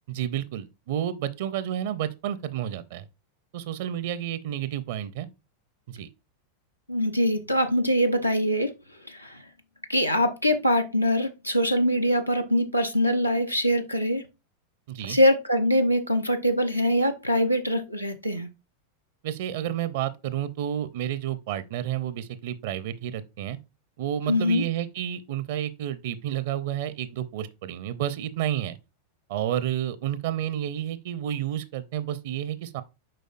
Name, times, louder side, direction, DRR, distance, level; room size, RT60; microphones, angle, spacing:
voice 1, 0.1-3.1 3.5-5.3 5.9-6.1 14.9-15.2 19.2-23.6 24.0-28.8 29.3-32.8, right 11 dB, 55° right, 0.5 m, -30 dB
voice 2, 6.9-8.7 9.1-9.4 9.9-14.2 15.0-18.5 24.3-24.6, equal, 90° left, 0.7 m, -23 dB
7.5 x 5.1 x 2.5 m
figure-of-eight pair, 90°, 0 cm